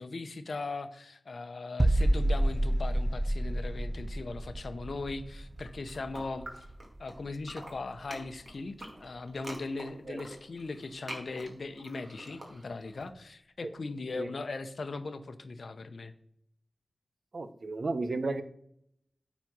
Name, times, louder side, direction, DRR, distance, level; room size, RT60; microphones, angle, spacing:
voice 1, 0.0-6.5 7.0-16.1, left 3 dB, 70° left, 10 dB, 0.7 m, -39 dB
sound 1, 1.8-7.5 7.8-8.0, right 1 dB, 20° right, 0.4 m, -30 dB
sound 2, 5.5-7.2 7.4-13.0, right 1 dB, 40° right, 2.1 m, -46 dB
voice 2, 17.3-18.4, right 3 dB, 60° right, 11 dB, 0.7 m, -33 dB
9.3 x 4.1 x 6.1 m, 0.71 s
wide cardioid pair, 75°, 0 cm